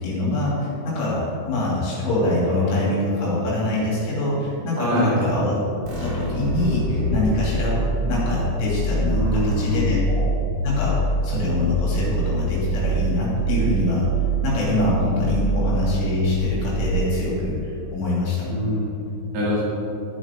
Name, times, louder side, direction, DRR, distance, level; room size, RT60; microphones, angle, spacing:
voice 1, 0.0-5.5 6.0-10.3 10.6-14.1 14.4-18.5, left 2 dB, 85° left, -6 dB, 5.3 m, -24 dB
voice 2, 4.8-5.2 9.1-10.1 18.5-19.0 19.3-19.6, equal, 60° right, -7 dB, 3.7 m, -24 dB
sound 1, 5.8-17.3, right 2 dB, 40° right, 3.6 m, -25 dB
12.0 x 9.2 x 3.8 m, 2.8 s
omnidirectional pair, 5.4 m